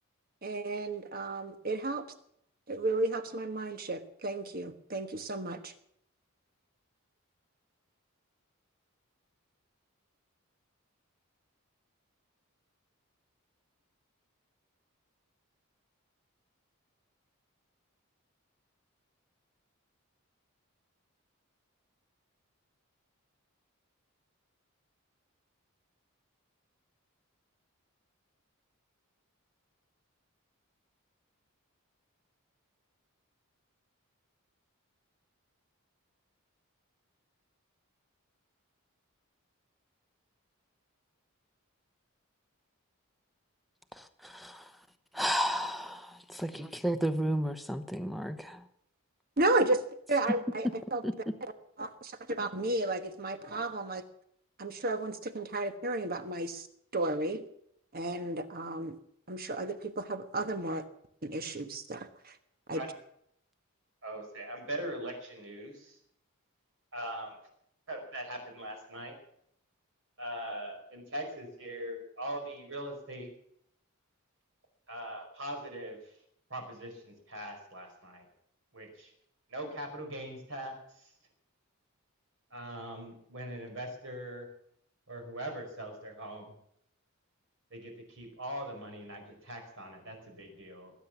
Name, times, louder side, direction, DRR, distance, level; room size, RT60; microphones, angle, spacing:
voice 1, 0.4-2.1 2.7-5.7 49.4-49.8 50.1-51.0 51.8-54.0 54.6-56.7 56.9-57.4 57.9-59.0 59.3-60.8 61.2-62.4 62.7-62.8, right 2 dB, 45° right, 1.3 m, -33 dB
voice 2, 43.9-44.7 45.1-48.6 51.0-51.1, equal, ahead, 0.9 m, -33 dB
voice 3, 64.0-66.0 66.9-67.4 67.9-69.2 70.2-73.3 74.9-76.0 76.5-78.2 78.7-79.1 79.5-81.1 82.5-84.5 85.1-86.5 87.7-90.9, right 1 dB, 60° right, 5.0 m, -41 dB
20.0 x 9.4 x 7.2 m
head